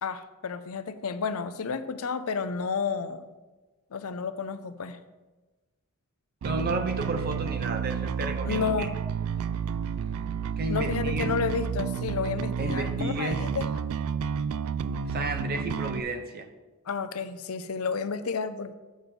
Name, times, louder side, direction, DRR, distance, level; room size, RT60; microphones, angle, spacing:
voice 1, 0.0-3.3 3.9-5.0 8.4-8.9 10.7-13.7 16.9-18.7, left 5 dB, 70° left, 12 dB, 0.5 m, -31 dB
voice 2, 6.4-8.9 10.5-11.3 12.6-13.4 15.1-16.5, right 2 dB, 45° right, 7 dB, 0.7 m, -32 dB
Bass guitar, 6.4-16.0, right 7 dB, 75° right, 0.3 m, -31 dB
8.0 x 5.0 x 6.0 m, 1.2 s
head